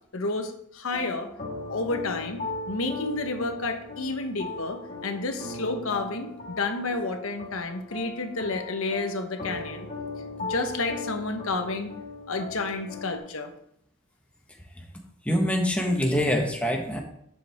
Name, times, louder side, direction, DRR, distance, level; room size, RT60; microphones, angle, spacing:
voice 1, 0.1-1.3 1.7-9.9 10.5-11.9 12.3-13.5, left 3 dB, 85° left, 5 dB, 1.2 m, -30 dB
sound 1, 0.9-13.2, left 2 dB, 40° left, 2.0 m, -38 dB
voice 2, 15.2-17.0, equal, 5° left, 1 dB, 1.4 m, -24 dB
10.5 x 7.6 x 3.6 m, 0.72 s
head